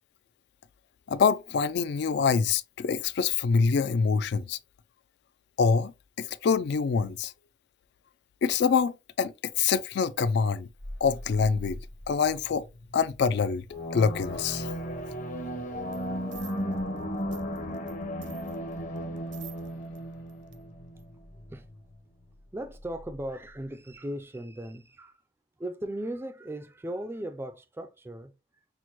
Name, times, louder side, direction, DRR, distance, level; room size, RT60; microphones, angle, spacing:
voice 1, 1.1-4.6 5.6-7.3 8.4-10.7 11.0-11.8 12.1-12.6 12.9-13.6 13.9-14.7, left 5 dB, 60° left, 0.3 m, -25 dB
sound 1, 10.7-24.0, left 1 dB, 85° left, 0.9 m, -48 dB
sound 2, 13.7-21.1, equal, 45° left, 0.9 m, -35 dB
sound 3, 15.9-16.1 16.3-18.0 18.2-20.0 20.3-20.6 21.0-21.1, right 10 dB, 65° right, 0.6 m, -49 dB
voice 2, 22.5-25.2 25.6-28.3, right 1 dB, 10° right, 0.3 m, -37 dB
6.1 x 2.1 x 2.9 m
head